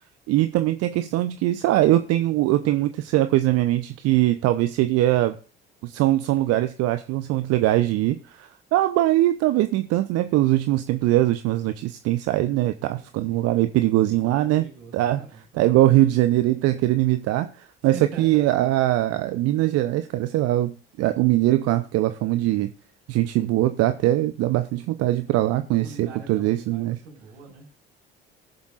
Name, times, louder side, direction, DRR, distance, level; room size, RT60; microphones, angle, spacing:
voice 1, 0.3-5.4 5.8-14.7 14.9-15.2 15.5-22.7 23.1-27.0, right 15 dB, 55° right, 10 dB, 0.7 m, -22 dB
voice 2, 12.9-13.7 14.2-15.9 17.9-18.5 25.1-25.3 25.8-27.7, right 4 dB, 75° right, -2 dB, 4.8 m, -43 dB
19.0 x 7.1 x 2.5 m, 0.42 s
figure-of-eight pair, 55°, 29 cm